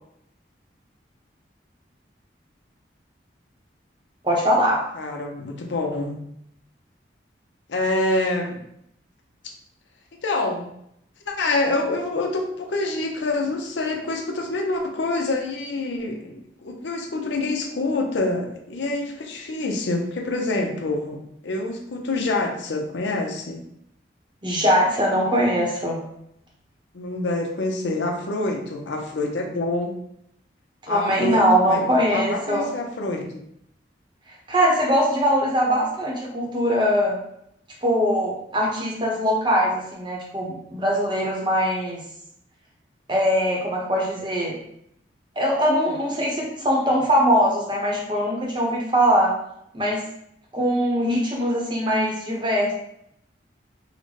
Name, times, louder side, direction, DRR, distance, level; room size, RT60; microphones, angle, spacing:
voice 1, 4.2-4.9 24.4-26.0 30.9-32.7 34.5-37.2 37.8-42.0 43.1-44.6 45.4-49.3 49.7-50.0 50.5-52.7, equal, 25° right, -2 dB, 0.8 m, -21 dB
voice 2, 5.0-6.2 7.7-8.6 10.2-10.7 11.3-21.2 21.4-23.6 26.9-29.9 30.9-31.4 31.7-33.4, left 2 dB, 75° left, 2 dB, 0.6 m, -26 dB
3.8 x 2.1 x 3.2 m, 0.74 s
head